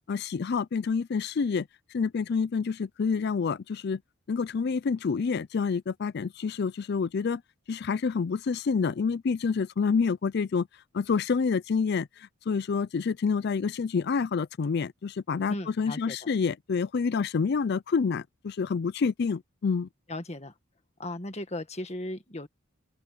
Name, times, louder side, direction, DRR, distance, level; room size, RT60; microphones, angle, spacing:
voice 1, 0.1-1.7 1.9-4.0 4.3-7.4 7.7-10.7 10.9-19.9, left 5 dB, 55° left, 0.4 m, -28 dB
voice 2, 15.5-16.2 20.1-20.5 21.0-22.5, left 1 dB, 30° left, 1.7 m, -36 dB
open air
head